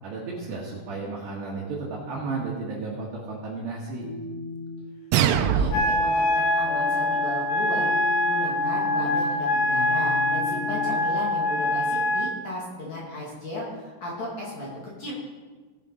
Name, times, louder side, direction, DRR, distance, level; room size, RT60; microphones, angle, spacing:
voice 1, 0.0-4.1, right 3 dB, 65° right, -5 dB, 3.6 m, -33 dB
sound 1, 4.0-4.8 6.0-11.0, left 4 dB, 60° left, 3.4 m, -36 dB
sound 2, 5.1-6.1, right 9 dB, 85° right, 3.3 m, -22 dB
voice 2, 5.2-7.9 8.2-14.7 15.0-15.1, left 1 dB, 45° left, -5 dB, 2.7 m, -35 dB
Wind instrument woodwind instrument, 5.7-12.3, left 1 dB, 80° left, 3.8 m, -24 dB
18.5 x 7.3 x 5.2 m, 1.4 s
omnidirectional pair, 5.8 m